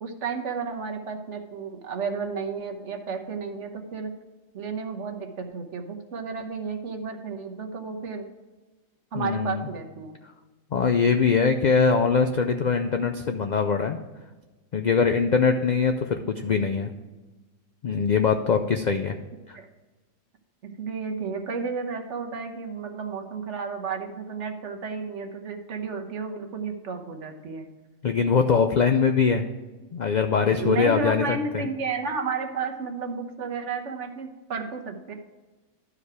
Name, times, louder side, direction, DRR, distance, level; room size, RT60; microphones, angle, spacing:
voice 1, 0.0-4.1 4.5-8.2 9.1-10.2 19.6-19.7 20.6-27.7 30.5-35.1, right 5 dB, 65° right, 4 dB, 1.3 m, -32 dB
voice 2, 9.2-9.6 10.7-14.0 14.7-16.9 17.8-19.1 19.5-19.6 28.0-29.5 29.9-31.6, left 5 dB, 65° left, 6 dB, 0.4 m, -22 dB
12.0 x 5.0 x 4.8 m, 1.2 s
omnidirectional pair, 1.4 m